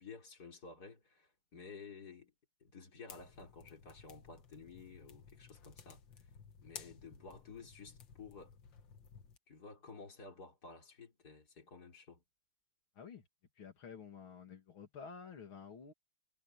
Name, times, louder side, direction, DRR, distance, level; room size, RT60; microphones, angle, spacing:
voice 1, 0.0-2.3 2.6-6.3 6.6-8.5 9.5-12.2, left 4 dB, 50° left, 4.2 m, -53 dB
sound 1, 3.1-9.4, left 6 dB, 70° left, 2.3 m, -56 dB
voice 2, 12.9-13.3 13.6-15.9, left 6 dB, 85° left, 3.3 m, -51 dB
omnidirectional pair, 2.2 m